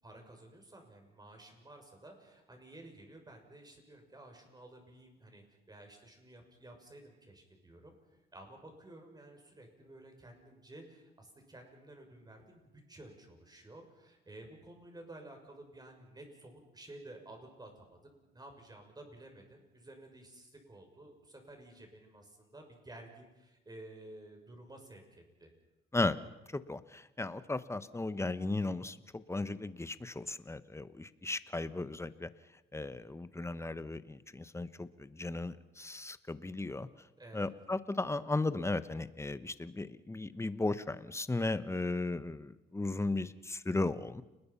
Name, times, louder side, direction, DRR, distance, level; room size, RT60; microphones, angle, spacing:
voice 1, 0.0-18.0 18.3-25.5 37.2-37.5, right 1 dB, 20° right, 3 dB, 6.6 m, -53 dB
voice 2, 26.5-32.3 32.7-36.9 37.3-44.2, left 2 dB, 15° left, 14 dB, 1.1 m, -36 dB
30.0 x 20.5 x 5.7 m, 1.0 s
cardioid pair, 90°, 20 cm